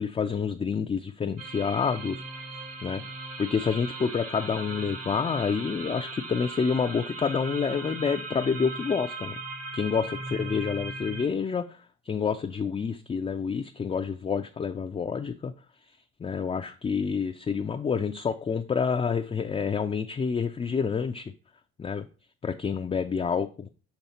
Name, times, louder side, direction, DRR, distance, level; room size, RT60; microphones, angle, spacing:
voice 1, 0.0-2.2 2.5-3.0 3.4-9.4 9.7-11.8 12.1-15.5 16.2-21.3 21.8-22.1 22.4-23.7, left 6 dB, 20° left, 5 dB, 0.4 m, -28 dB
sound 1, 1.4-11.3, right 2 dB, 50° right, 1.2 m, -38 dB
7.0 x 3.2 x 4.2 m, 0.36 s
cardioid pair, 90°, 30 cm